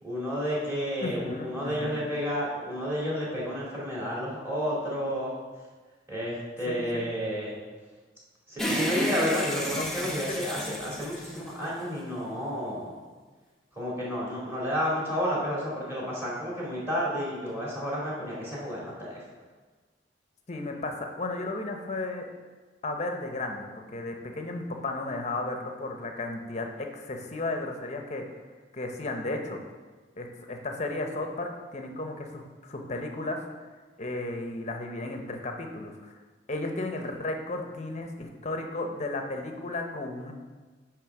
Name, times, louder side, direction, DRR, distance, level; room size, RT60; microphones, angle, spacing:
voice 1, 0.0-5.3 6.1-7.5 8.5-12.9 13.8-19.2, equal, 15° right, -6 dB, 2.4 m, -31 dB
voice 2, 1.0-2.0 6.7-7.1 9.8-9.9 10.3-10.4 20.5-22.3 22.8-28.2 28.7-29.6 30.2-33.4 34.0-36.1 36.5-40.3, left 2 dB, 40° left, 4 dB, 0.8 m, -34 dB
sound 1, 8.6-12.1, equal, ahead, 0.8 m, -31 dB
8.4 x 3.4 x 5.9 m, 1.4 s
head